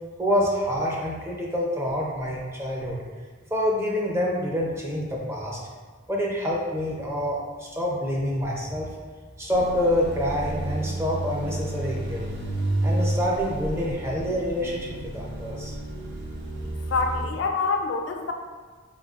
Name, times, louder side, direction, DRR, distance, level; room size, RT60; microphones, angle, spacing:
voice 1, 0.2-3.0 3.5-5.6 6.1-8.9 9.4-12.3 12.8-15.7, equal, 15° right, -3 dB, 0.5 m, -27 dB
sound 1, 9.5-17.3, right 1 dB, 55° right, 0.6 m, -31 dB
voice 2, 16.9-18.3, left 4 dB, 60° left, 4 dB, 0.3 m, -26 dB
3.8 x 3.7 x 2.4 m, 1.5 s
head